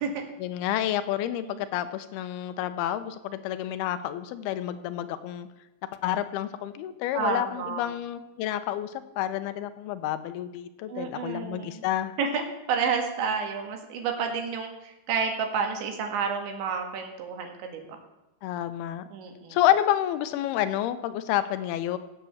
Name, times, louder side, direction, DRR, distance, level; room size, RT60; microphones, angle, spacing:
voice 1, 0.4-5.5 6.0-12.2 18.4-19.0 19.5-22.0, left 12 dB, 75° left, 11 dB, 2.5 m, -29 dB
voice 2, 7.1-7.8 10.9-11.9 12.2-18.0 19.1-19.6, right 5 dB, 85° right, 3 dB, 4.2 m, -30 dB
17.0 x 8.5 x 7.1 m, 0.98 s
omnidirectional pair, 5.1 m